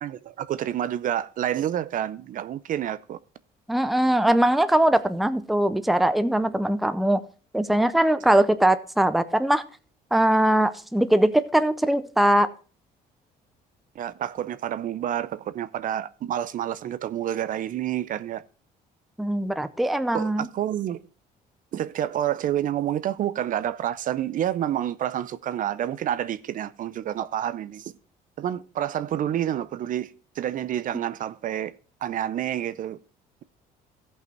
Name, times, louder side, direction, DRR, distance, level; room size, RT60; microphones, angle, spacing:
voice 1, 0.0-3.2 14.0-18.4 20.1-21.0 21.7-27.9 28.4-31.8 32.0-33.0, right 11 dB, 55° right, 0.5 m, -28 dB
voice 2, 3.7-7.2 7.5-9.6 10.1-12.5 19.2-20.5, right 1 dB, ahead, 0.6 m, -21 dB
14.5 x 5.6 x 4.5 m
cardioid pair, 110°, 17 cm